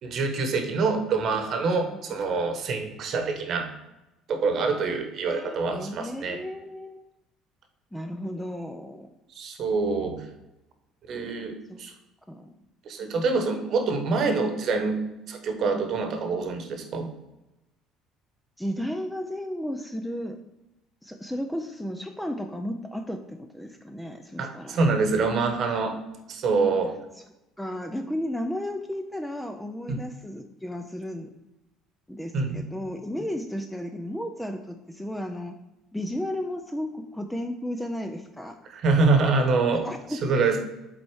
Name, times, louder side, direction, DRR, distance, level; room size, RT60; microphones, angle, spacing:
voice 1, 0.0-3.7 4.3-6.4 9.4-10.2 11.1-11.9 12.8-15.0 15.3-17.1 24.4-26.0 26.3-27.0 29.9-30.0 32.3-32.6 38.7-39.9 40.2-40.6, right 4 dB, 45° right, 6 dB, 1.0 m, -25 dB
voice 2, 1.9-2.2 5.3-7.0 7.9-9.1 11.7-11.8 12.3-12.5 18.6-20.4 21.0-24.8 27.6-31.3 32.1-35.6 35.9-38.6 39.7-40.4, equal, 5° left, 6 dB, 0.4 m, -34 dB
7.7 x 4.2 x 4.6 m, 0.96 s
cardioid pair, 155°, 0 cm